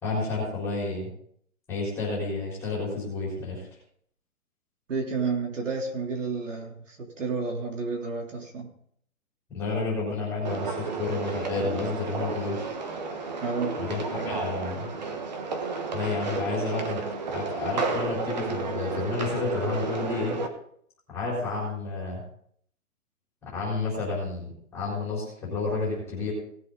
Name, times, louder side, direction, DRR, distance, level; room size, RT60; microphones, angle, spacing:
voice 1, 0.0-1.1 1.7-3.7 9.5-12.7 13.8-14.9 15.9-17.0 17.3-20.4 21.1-22.2 23.4-26.3, left 3 dB, 5° left, -6 dB, 4.1 m, -30 dB
voice 2, 4.9-8.7 13.4-13.8, right 4 dB, 60° right, 1 dB, 3.4 m, -31 dB
sound 1, 10.4-20.5, right 4 dB, 30° right, 1.2 m, -32 dB
18.5 x 7.8 x 4.0 m, 0.64 s
hypercardioid pair, 175°, 43 cm